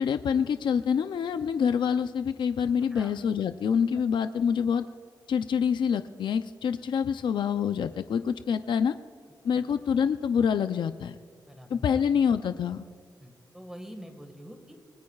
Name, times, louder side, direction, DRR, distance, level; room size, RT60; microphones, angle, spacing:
voice 1, 0.0-4.9 5.3-8.9 9.4-11.1 11.7-12.8, left 7 dB, 80° left, 10 dB, 0.5 m, -26 dB
voice 2, 11.5-11.8 13.2-14.8, equal, 5° right, 5 dB, 1.7 m, -45 dB
29.5 x 19.5 x 2.4 m, 2.1 s
wide cardioid pair, 170°, 8 cm